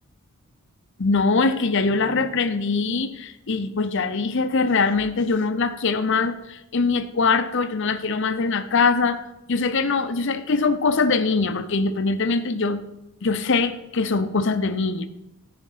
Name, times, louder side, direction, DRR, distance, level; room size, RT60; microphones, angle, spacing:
voice 1, 1.0-9.2 9.5-12.8 13.2-15.1, left 4 dB, 55° left, 11 dB, 0.6 m, -22 dB
9.7 x 5.2 x 5.6 m, 0.89 s
head